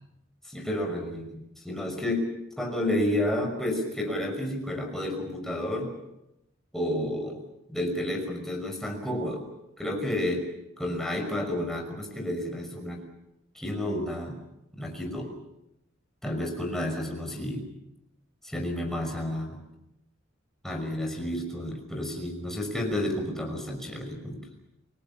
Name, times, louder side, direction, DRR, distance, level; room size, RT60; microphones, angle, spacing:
voice 1, 0.5-1.4 1.6-2.3 2.6-5.9 6.7-7.4 7.7-9.4 9.8-10.5 10.8-13.0 13.5-14.4 14.8-15.3 16.2-17.7 18.4-19.6 20.6-24.5, left 1 dB, ahead, 2 dB, 5.7 m, -31 dB
29.5 x 20.5 x 7.2 m, 0.88 s
head